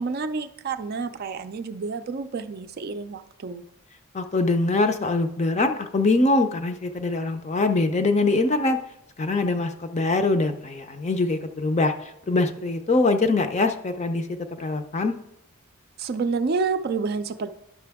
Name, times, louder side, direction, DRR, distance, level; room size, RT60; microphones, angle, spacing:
voice 1, 0.0-3.6 16.0-17.5, right 4 dB, 45° right, 9 dB, 0.4 m, -29 dB
voice 2, 4.1-8.8 9.2-15.2, left 2 dB, 30° left, 7 dB, 0.5 m, -23 dB
10.5 x 5.8 x 3.5 m, 0.81 s
head